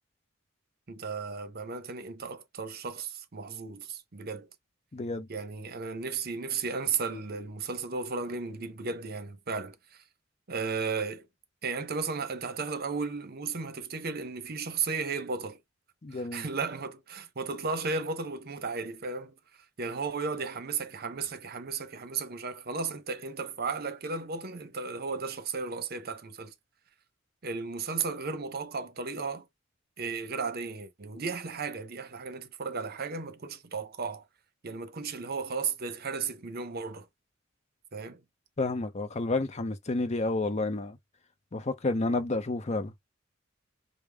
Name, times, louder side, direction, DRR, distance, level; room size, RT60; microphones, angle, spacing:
voice 1, 0.9-4.5 5.3-9.8 10.5-11.3 11.6-15.6 16.3-19.3 19.8-26.5 27.4-29.5 30.0-34.2 34.6-37.1 37.9-38.2, right 4 dB, 50° right, 0.8 m, -34 dB
voice 2, 4.9-5.3 16.0-16.5 38.6-41.0 41.5-42.9, left 2 dB, 35° left, 0.6 m, -30 dB
5.1 x 2.1 x 3.4 m
head